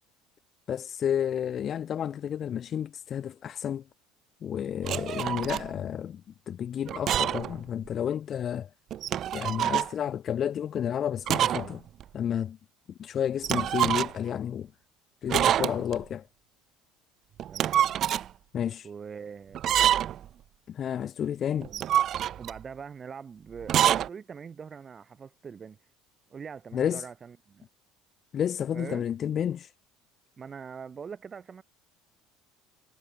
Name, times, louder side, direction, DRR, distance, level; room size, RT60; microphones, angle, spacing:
voice 1, 0.7-3.8 4.4-6.2 6.5-8.7 9.3-11.8 12.1-12.6 13.0-14.7 15.2-16.2 18.5-18.9 20.7-21.7 26.7-27.0 28.3-29.7, left 9 dB, 45° left, 2.2 m, -31 dB
sound 1, 4.8-5.7 6.9-7.5 7.9-8.0 8.9-9.9 11.3-11.7 12.0-12.1 13.4-14.3 15.3-16.0 17.4-18.3 19.5-20.3 21.6-22.6 23.6-24.1, right 11 dB, 50° right, 2.4 m, -26 dB
voice 2, 17.5-17.8 18.8-19.6 21.7-21.8 22.4-25.8 26.3-27.6 28.7-29.0 30.4-31.6, right 6 dB, 35° right, 6.9 m, -42 dB
supercardioid pair, 90°, 0 cm